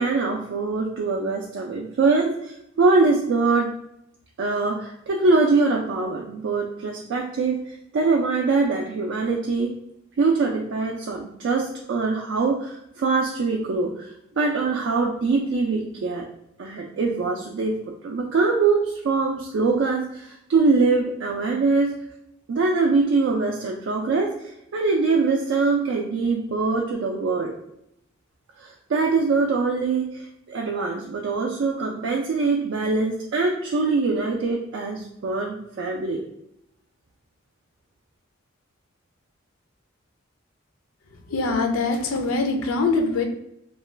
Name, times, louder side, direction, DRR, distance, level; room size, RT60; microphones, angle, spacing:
voice 1, 0.0-3.7 4.4-9.7 10.2-16.3 16.6-17.8 18.0-22.0 22.5-27.5 28.6-36.2, right 3 dB, 60° right, 0 dB, 0.3 m, -23 dB
voice 2, 41.3-43.2, left 3 dB, 80° left, 5 dB, 0.4 m, -23 dB
2.4 x 2.2 x 3.1 m, 0.78 s
head